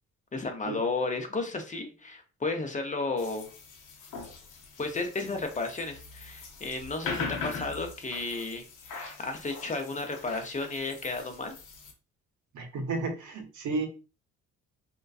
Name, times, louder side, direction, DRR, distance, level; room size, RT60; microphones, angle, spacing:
voice 1, 0.3-3.5 4.8-11.5, left 3 dB, 25° left, 5 dB, 0.5 m, -33 dB
sound 1, 3.2-11.9, left 4 dB, 85° left, 0.7 m, -41 dB
voice 2, 12.5-13.8, right 3 dB, 70° right, 3 dB, 0.7 m, -32 dB
2.5 x 2.2 x 2.3 m, 0.33 s
cardioid pair, 90°, 30 cm